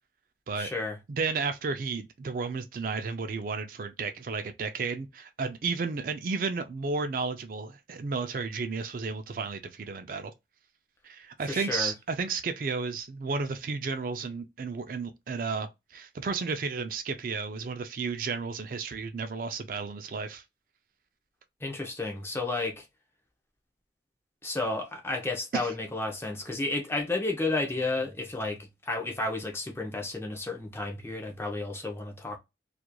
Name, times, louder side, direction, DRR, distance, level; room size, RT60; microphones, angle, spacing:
voice 1, 0.6-1.0 11.5-11.9 21.6-22.8 24.4-32.4, left 2 dB, 15° left, 0.5 m, -32 dB
voice 2, 1.1-10.3 11.0-20.4 25.5-25.7, right 4 dB, 50° right, 0.4 m, -33 dB
2.8 x 2.4 x 2.2 m
head